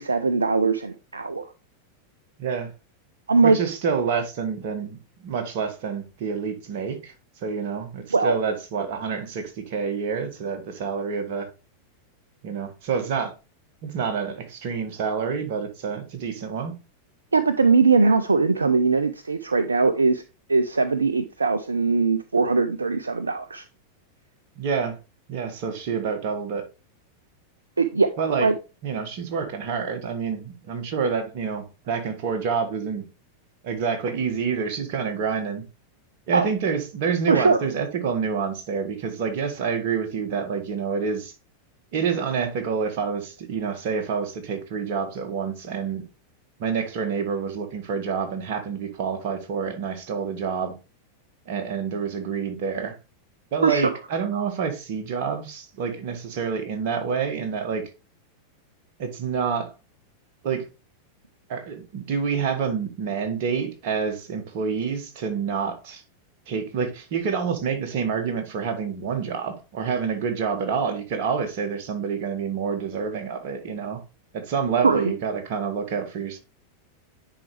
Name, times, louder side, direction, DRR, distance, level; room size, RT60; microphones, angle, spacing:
voice 1, 0.0-1.5 3.3-3.6 8.1-8.4 17.3-20.2 20.5-23.6 27.8-28.1 28.4-28.5 36.3-36.5 37.3-37.6 53.6-53.9 74.8-75.1, right 4 dB, 75° right, 0.4 m, -20 dB
voice 2, 2.4-2.7 3.4-5.0 5.2-7.1 7.4-11.5 12.4-13.3 13.8-16.7 24.6-25.0 25.3-26.6 28.2-28.5 28.8-33.0 33.6-35.6 36.3-41.3 41.9-46.0 46.6-50.7 51.5-52.9 53.5-57.8 59.0-59.7 60.4-60.6 61.5-66.0 66.5-74.0 74.3-76.4, right 6 dB, 45° right, 1.7 m, -28 dB
9.7 x 4.7 x 3.2 m
figure-of-eight pair, 90°, 0 cm